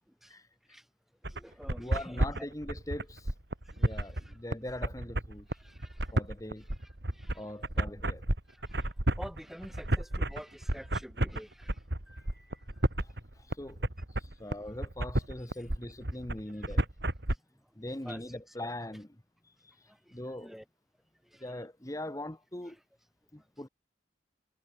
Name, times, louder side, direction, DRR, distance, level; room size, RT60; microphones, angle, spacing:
voice 1, 1.2-2.5 3.6-4.4 5.5-6.1 6.6-7.6 8.5-12.9 16.6-16.8 18.0-18.7 19.9-20.6 21.2-21.5 22.7-22.8, equal, ahead, 3.2 m, -50 dB
sound 1, 1.2-17.3, right 1 dB, 60° right, 2.6 m, -31 dB
voice 2, 1.8-3.3 3.8-5.5 6.1-6.6 7.3-8.2 13.6-13.8 14.2-16.8 17.7-19.1 20.1-20.5 21.4-22.8 23.3-23.7, left 1 dB, 20° left, 1.2 m, -41 dB
head